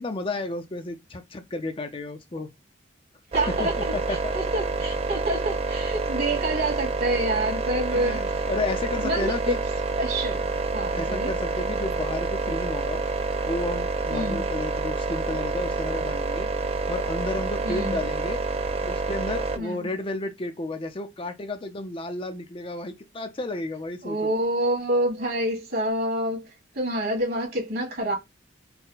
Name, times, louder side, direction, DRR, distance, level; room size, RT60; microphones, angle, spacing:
voice 1, 0.0-2.5 3.6-4.3 6.3-6.4 7.9-9.6 10.9-13.0 13.5-16.5 16.9-18.4 18.9-24.3, left 2 dB, 30° left, 0.5 m, -32 dB
sound 1, 3.3-19.6, right 3 dB, 30° right, 0.5 m, -28 dB
voice 2, 3.3-3.9 4.3-8.2 9.0-9.6 10.0-10.5 10.7-11.3 14.1-14.4 17.6-18.0 19.6-19.9 24.0-26.5 26.8-28.2, right 1 dB, 55° right, 1.7 m, -27 dB
4.2 x 2.2 x 3.8 m
head